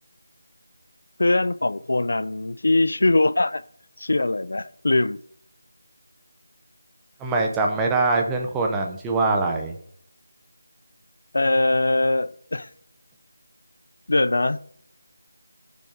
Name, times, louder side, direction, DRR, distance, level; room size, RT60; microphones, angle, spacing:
voice 1, 1.2-3.6 4.0-5.2 11.3-12.7 14.1-14.6, left 2 dB, 60° left, 0.4 m, -21 dB
voice 2, 7.2-9.7, right 3 dB, 5° right, 0.6 m, -23 dB
12.0 x 5.3 x 4.9 m
figure-of-eight pair, 175°, 0 cm